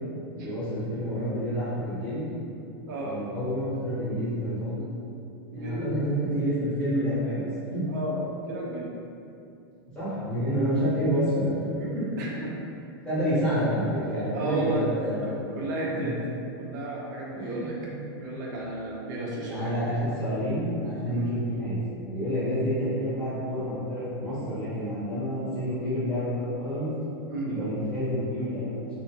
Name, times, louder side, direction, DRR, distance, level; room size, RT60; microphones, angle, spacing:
voice 1, 0.4-2.3 3.0-4.8 5.5-7.9 9.9-12.0 13.0-15.3 15.9-16.1 17.4-18.0 19.2-26.9 27.5-28.7, equal, 5° left, -14 dB, 0.7 m, -29 dB
voice 2, 2.9-3.2 5.5-6.0 6.9-7.2 7.6-8.9 12.2-12.5 14.3-14.8 15.2-16.1 16.6-17.8 18.1-19.6 21.1-21.3 27.3-27.5, right 2 dB, 50° right, -4 dB, 0.5 m, -33 dB
2.7 x 2.4 x 2.7 m, 2.6 s
supercardioid pair, 180°, 13 cm